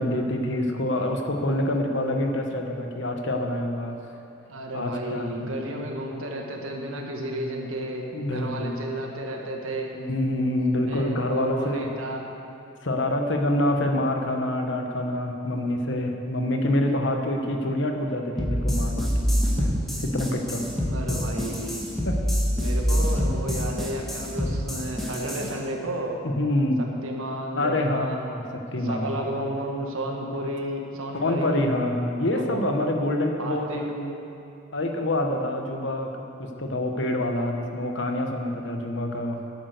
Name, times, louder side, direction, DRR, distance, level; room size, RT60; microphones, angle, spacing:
voice 1, 0.0-3.9 4.7-5.6 8.1-8.8 9.9-11.9 12.8-19.1 19.6-20.7 22.0-22.2 26.2-26.8 27.5-29.1 31.1-33.9 34.7-39.4, left 1 dB, 60° left, 3 dB, 1.2 m, -26 dB
voice 2, 4.5-9.9 10.9-12.2 20.9-21.8 22.6-26.2 27.0-28.2 28.8-31.7 32.3-32.8 33.4-34.2, right 1 dB, 90° right, 1 dB, 1.7 m, -32 dB
sound 1, 18.4-25.5, equal, ahead, 1.8 m, -25 dB
12.0 x 8.8 x 6.6 m, 2.7 s
head